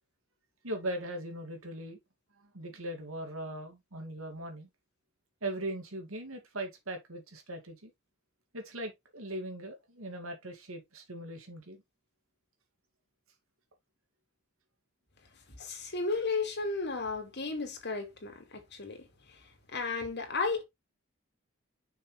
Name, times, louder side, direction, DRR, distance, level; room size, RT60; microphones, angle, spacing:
voice 1, 0.6-2.0 2.4-4.7 5.4-7.9 8.5-11.8, right 1 dB, 85° right, 2.7 m, -39 dB
voice 2, 15.6-19.4 19.7-20.6, left 4 dB, 55° left, 2.6 m, -34 dB
6.7 x 6.0 x 3.4 m
head